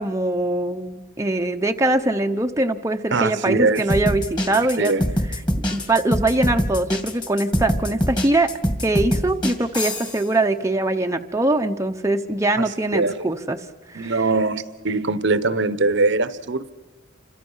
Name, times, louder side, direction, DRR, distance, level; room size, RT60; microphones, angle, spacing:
voice 1, 0.0-5.0 5.7-8.5 8.8-14.2, right 2 dB, 15° right, 4 dB, 0.8 m, -22 dB
voice 2, 3.1-3.8 4.5-5.0 12.6-13.2 13.9-16.7, right 3 dB, 60° right, 14 dB, 1.0 m, -22 dB
sound 1, 3.8-10.2, equal, 20° left, 2.5 m, -24 dB
29.0 x 25.5 x 5.6 m, 1.3 s
head